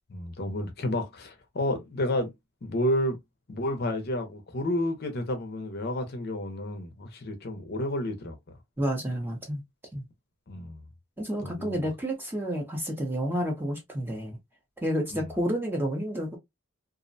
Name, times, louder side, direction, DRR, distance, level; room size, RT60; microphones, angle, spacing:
voice 1, 0.1-2.3 2.6-3.2 3.5-8.4 10.5-10.8 11.4-11.8 15.1-15.3, left 1 dB, 45° left, 0.5 m, -30 dB
voice 2, 8.8-9.6 9.9-10.0 11.2-14.4 14.8-16.4, equal, 10° right, 0.5 m, -30 dB
2.4 x 2.1 x 2.5 m
head